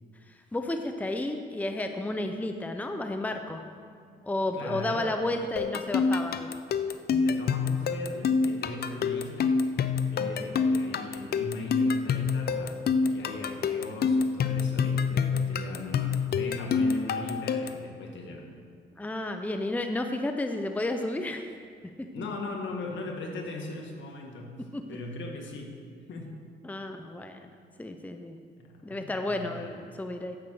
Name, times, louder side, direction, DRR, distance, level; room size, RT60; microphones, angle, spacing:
voice 1, 0.5-3.6 4.2-6.5 19.0-21.5 22.2-22.3 24.7-24.8 26.6-27.5 27.8-28.4 28.8-30.4, left 1 dB, 10° left, 6 dB, 0.7 m, -32 dB
voice 2, 4.5-5.1 7.2-9.5 10.1-12.8 13.1-18.5 22.1-24.6 24.9-25.8 26.1-26.3 28.6-29.7, left 2 dB, 70° left, 1 dB, 1.8 m, -38 dB
sound 1, 5.6-17.9, left 5 dB, 55° left, 0.6 m, -27 dB
10.0 x 7.3 x 6.5 m, 2.1 s
cardioid pair, 90°, 20 cm